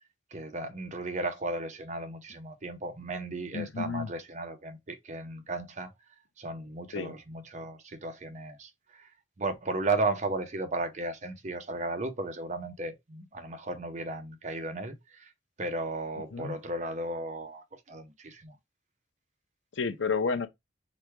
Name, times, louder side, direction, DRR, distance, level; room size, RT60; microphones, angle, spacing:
voice 1, 0.3-5.9 6.4-9.1 9.4-15.3 15.6-18.6, right 2 dB, 40° right, 0.7 m, -35 dB
voice 2, 3.5-4.1 6.9-7.2 16.3-16.6 19.8-20.5, left 5 dB, 85° left, 0.7 m, -30 dB
4.9 x 2.3 x 4.6 m
head